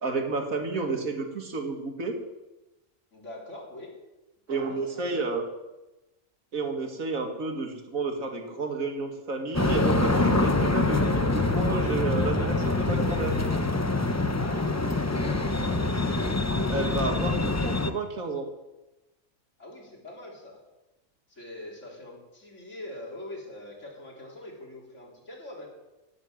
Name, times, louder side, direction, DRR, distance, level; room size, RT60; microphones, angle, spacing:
voice 1, 0.0-2.2 4.5-5.4 6.5-13.4 16.7-18.5, right 3 dB, 85° right, 3 dB, 2.4 m, -31 dB
voice 2, 3.1-4.0 4.5-5.3 14.4-16.4 19.6-20.6 21.3-25.7, left 1 dB, 60° left, -2 dB, 4.1 m, -43 dB
sound 1, 9.5-17.9, left 2 dB, 15° left, 0.7 m, -25 dB
18.0 x 8.0 x 7.5 m, 1.0 s
omnidirectional pair, 1.4 m